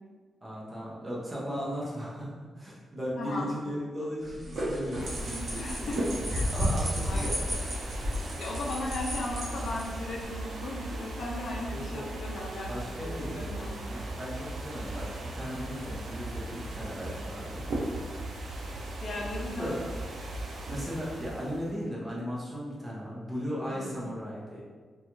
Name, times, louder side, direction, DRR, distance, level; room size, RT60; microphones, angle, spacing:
voice 1, 0.4-6.1 6.5-7.6 11.7-12.0 12.7-17.7 19.6-19.8 20.7-24.6, equal, 15° right, -6 dB, 0.7 m, -37 dB
voice 2, 3.2-3.5 5.6-6.0 6.3-6.5 7.0-7.3 8.4-13.8 19.0-19.8 23.7-24.0, left 2 dB, 60° left, -2 dB, 0.4 m, -37 dB
sound 1, 4.2-10.2, equal, 50° right, 0.8 m, -33 dB
sound 2, 5.0-21.8, right 1 dB, 70° right, 0.4 m, -37 dB
2.5 x 2.3 x 2.9 m, 1.5 s
wide cardioid pair, 160°, 0 cm